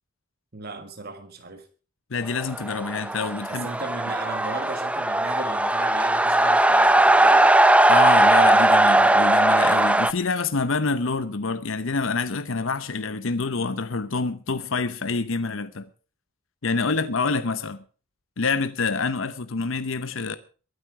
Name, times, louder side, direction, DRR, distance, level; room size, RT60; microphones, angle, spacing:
voice 1, 0.5-1.7 3.5-7.5 16.7-17.4, right 3 dB, 50° right, 1.6 m, -37 dB
voice 2, 2.1-3.7 7.9-15.9 16.6-17.8 18.4-20.4, left 4 dB, 65° left, 0.8 m, -27 dB
sound 1, 2.4-10.1, right 1 dB, 5° right, 0.6 m, -18 dB
23.0 x 8.7 x 4.7 m
head